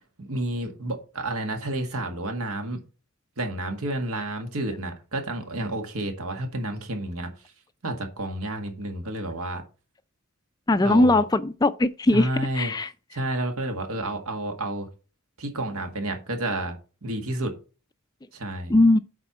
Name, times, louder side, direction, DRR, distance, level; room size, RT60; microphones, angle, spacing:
voice 1, 0.2-2.8 3.4-7.3 7.8-9.6 10.8-11.2 12.1-12.7 13.1-14.9 15.4-17.5 18.3-18.7, right 1 dB, 80° right, 1.8 m, -30 dB
voice 2, 10.7-12.3 12.5-12.9 18.7-19.0, left 2 dB, 15° left, 0.3 m, -19 dB
7.9 x 4.5 x 5.9 m
head